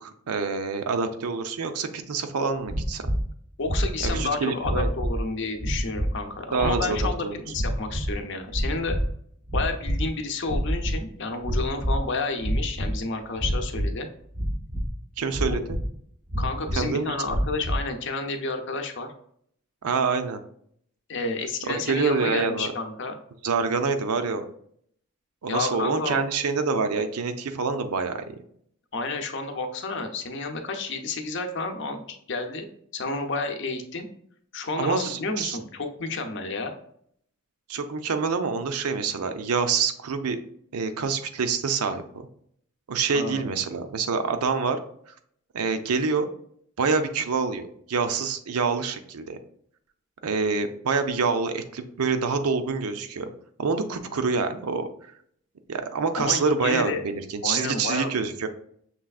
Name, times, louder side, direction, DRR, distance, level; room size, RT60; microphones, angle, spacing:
voice 1, 0.0-3.0 4.0-4.9 6.5-7.0 7.2-7.4 15.2-15.8 16.8-17.1 19.8-20.4 21.7-22.7 23.4-24.5 25.4-28.3 34.8-35.6 37.7-40.4 40.7-42.3 42.9-44.8 45.5-46.3 46.8-49.4 50.2-53.3 53.6-54.9 55.7-58.5, right 4 dB, 85° right, 8 dB, 0.5 m, -26 dB
sound 1, 2.7-3.3 3.6-4.3 4.6-5.2 5.6-6.2 6.6-7.1 7.5-8.2 8.5-9.1 9.4-10.1 10.4-11.0 11.4-12.0 12.4-13.0 13.4-13.9 14.4-15.0 15.3-15.9 16.3-16.8 17.3-17.8, equal, 20° right, 0.5 m, -27 dB
voice 2, 3.6-9.0 9.5-14.1 15.5-15.6 16.4-19.1 21.1-23.2 25.5-26.3 28.9-34.1 34.5-36.7 43.1-43.5 56.2-57.0 57.4-58.1, left 3 dB, 55° left, 6 dB, 0.6 m, -30 dB
6.1 x 3.3 x 2.3 m, 0.66 s
head